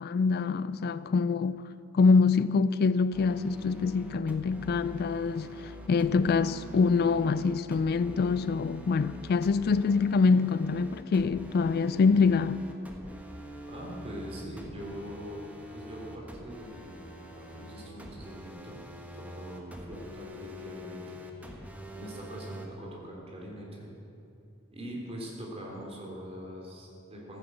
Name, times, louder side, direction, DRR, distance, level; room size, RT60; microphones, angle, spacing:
voice 1, 0.0-12.6, left 4 dB, 45° left, 0.3 m, -25 dB
sound 1, 3.1-22.7, equal, 5° right, 1.4 m, -45 dB
voice 2, 13.7-18.8 19.1-21.7 21.9-23.9 24.7-27.4, equal, 30° right, 3.3 m, -43 dB
15.0 x 10.0 x 7.9 m
head